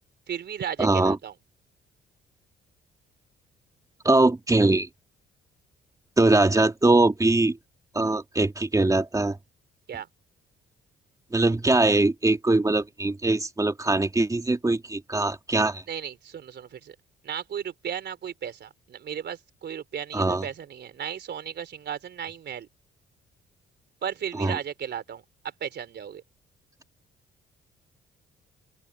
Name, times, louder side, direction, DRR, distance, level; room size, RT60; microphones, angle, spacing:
voice 1, 0.3-1.3 9.9-10.1 15.9-17.0 17.2-22.7 24.0-26.2, right 8 dB, 60° right, 3.7 m, -35 dB
voice 2, 0.8-1.2 4.0-4.9 6.2-7.6 7.9-9.4 11.3-15.8 20.1-20.5 24.4-24.6, right 2 dB, 15° right, 2.6 m, -22 dB
open air
cardioid pair, 90°, 20 cm